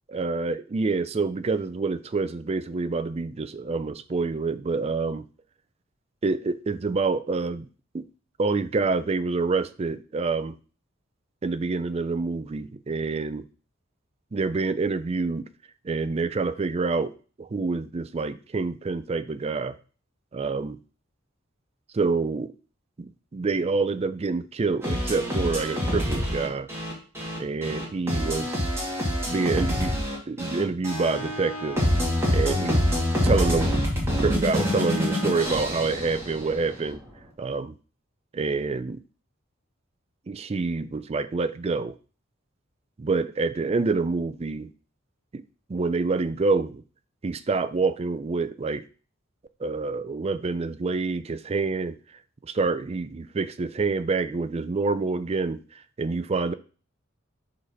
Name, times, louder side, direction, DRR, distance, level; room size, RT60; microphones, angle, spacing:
voice 1, 0.1-5.2 6.2-7.7 7.9-8.1 8.4-10.5 11.4-13.5 14.3-15.5 15.8-19.8 20.3-20.8 21.9-22.5 23.0-26.7 27.4-28.7 29.3-31.8 32.3-32.8 33.2-37.0 37.4-37.8 38.3-39.0 40.3-41.9 43.0-44.7 45.3-45.4 45.7-46.8 47.2-48.8 49.6-51.9 52.4-55.6 56.0-56.5, right 4 dB, 30° right, 12 dB, 0.4 m, -27 dB
sound 1, 24.8-36.8, left 1 dB, 15° right, 2.2 m, -26 dB
5.1 x 4.1 x 5.8 m, 0.38 s
head